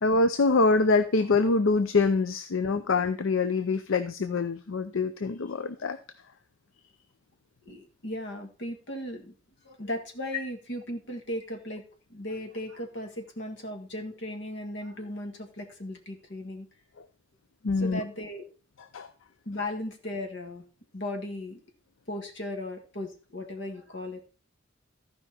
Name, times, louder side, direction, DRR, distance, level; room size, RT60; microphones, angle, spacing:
voice 1, 0.0-6.0 17.6-18.0 18.9-19.1, left 3 dB, 80° left, 10 dB, 0.6 m, -25 dB
voice 2, 7.7-9.3 9.6-16.7 17.8-18.4 19.5-20.6 20.9-21.6 22.1-24.2, left 1 dB, 65° left, 4 dB, 1.7 m, -37 dB
14.0 x 5.2 x 4.3 m, 0.35 s
head